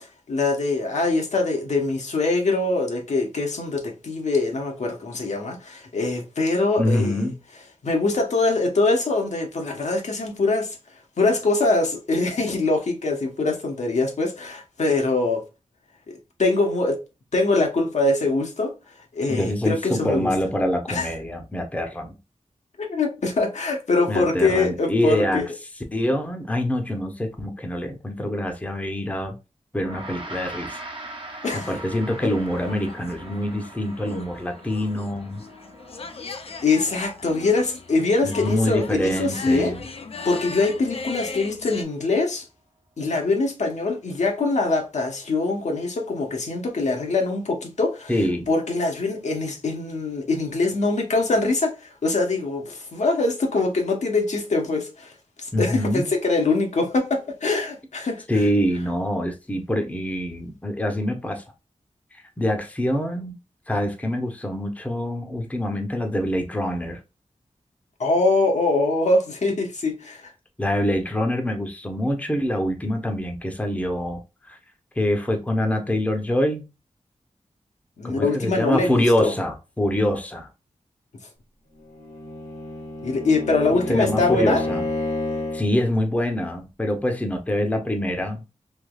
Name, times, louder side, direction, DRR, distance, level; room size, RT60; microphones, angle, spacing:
voice 1, 0.3-7.2 7.8-10.8 11.2-15.4 16.1-17.0 17.3-18.7 19.1-20.3 20.9-21.1 22.8-25.4 31.4-31.7 36.6-39.7 40.2-42.4 43.0-48.1 48.5-55.1 55.4-58.2 68.0-70.3 78.0-79.3 83.0-84.6, left 3 dB, 75° left, 0.9 m, -23 dB
voice 2, 6.8-7.3 19.3-22.2 24.1-25.4 25.8-29.4 29.7-30.8 31.3-35.4 38.2-39.8 48.1-48.5 55.5-56.1 58.3-61.4 62.4-63.4 63.7-67.0 70.6-74.6 75.0-76.6 78.0-80.5 83.9-84.8 85.5-88.4, left 1 dB, 10° left, 0.7 m, -25 dB
Gong, 29.7-39.4, right 2 dB, 45° right, 0.8 m, -42 dB
sound 1, 31.9-41.8, left 4 dB, 55° left, 0.5 m, -38 dB
Bowed string instrument, 81.9-85.8, left 2 dB, 90° left, 1.6 m, -29 dB
3.4 x 2.9 x 2.2 m
wide cardioid pair, 95°, 12 cm